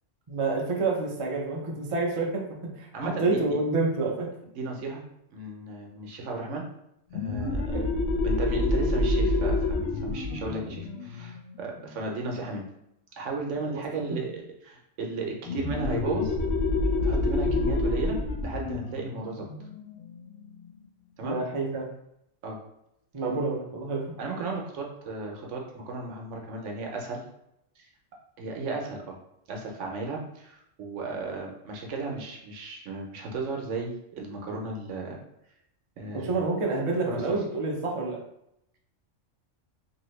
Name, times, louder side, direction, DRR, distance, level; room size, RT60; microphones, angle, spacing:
voice 1, 0.3-4.3 7.7-7.8 13.7-13.8 21.2-21.9 23.1-24.0 36.1-38.2, right 3 dB, 45° right, -1 dB, 0.4 m, -28 dB
voice 2, 2.9-3.4 4.5-5.0 5.3-6.6 7.1-7.8 8.2-12.6 13.2-16.3 17.0-19.5 21.2-21.4 22.4-22.6 24.2-27.2 27.8-27.9 28.4-29.2 29.5-35.2 36.0-36.4 37.1-37.4, right 3 dB, 70° right, 0 dB, 1.0 m, -35 dB
sound 1, 7.1-12.4 15.5-20.7, left 2 dB, 65° left, 0.8 m, -28 dB
2.8 x 2.6 x 3.1 m, 0.80 s
omnidirectional pair, 1.3 m